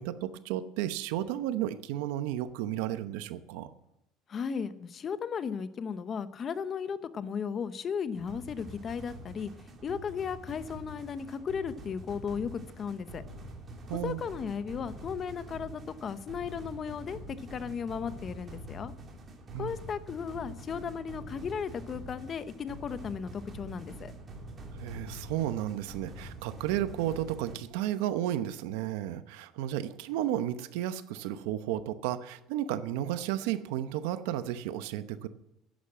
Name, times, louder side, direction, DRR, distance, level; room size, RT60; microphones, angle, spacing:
voice 1, 0.0-3.7 13.8-14.2 19.5-19.7 24.7-35.3, right 12 dB, 90° right, 12 dB, 0.8 m, -33 dB
voice 2, 4.3-9.5 9.8-13.2 14.0-18.9 19.6-24.1, left 6 dB, 35° left, 13 dB, 0.8 m, -35 dB
sound 1, 8.1-27.5, right 1 dB, 30° right, 3.0 m, -45 dB
10.5 x 10.5 x 7.5 m, 0.89 s
cardioid pair, 120°, 0 cm